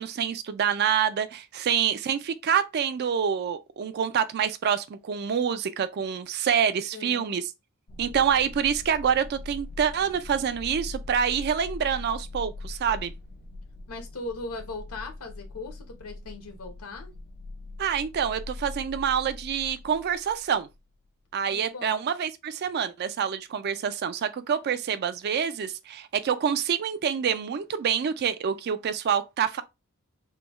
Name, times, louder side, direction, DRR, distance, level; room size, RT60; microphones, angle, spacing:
voice 1, 0.0-7.5 8.0-13.1 17.8-20.7 21.3-29.6, right 8 dB, 45° right, 0.3 m, -27 dB
voice 2, 6.9-7.3 13.9-17.1 21.5-22.0, left 3 dB, 75° left, 0.9 m, -39 dB
sound 1, 7.9-20.8, left 2 dB, 35° left, 0.3 m, -41 dB
3.3 x 2.2 x 3.0 m
head